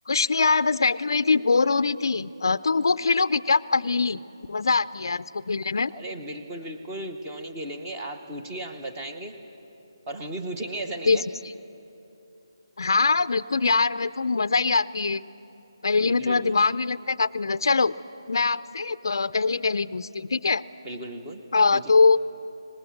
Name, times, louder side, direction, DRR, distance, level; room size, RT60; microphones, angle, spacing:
voice 1, 0.1-4.2 4.5-5.9 11.1-11.2 12.8-15.2 15.8-17.9 18.3-20.6 21.5-22.2, left 4 dB, 55° left, 14 dB, 0.4 m, -23 dB
voice 2, 5.8-9.3 10.1-11.2 16.0-16.5 20.8-21.4 21.7-21.9, right 1 dB, 10° right, 3 dB, 0.8 m, -35 dB
24.0 x 20.0 x 8.3 m, 2.9 s
hypercardioid pair, 175°, 3 cm